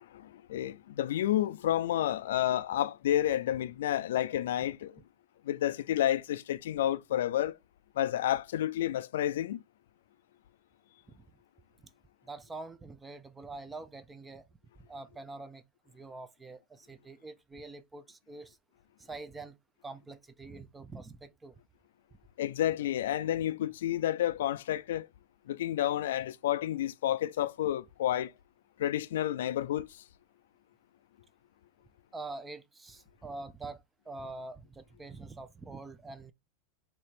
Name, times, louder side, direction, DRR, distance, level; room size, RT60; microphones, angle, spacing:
voice 1, 0.0-5.0 5.4-7.5 8.0-9.6 22.4-25.1 25.5-28.3 28.8-29.9, left 12 dB, 80° left, 0.3 m, -30 dB
voice 2, 12.2-14.4 14.9-15.6 15.9-18.6 19.0-19.6 19.8-21.6 32.1-36.3, right 3 dB, 15° right, 0.5 m, -45 dB
3.2 x 2.9 x 4.4 m
supercardioid pair, 125°, 0 cm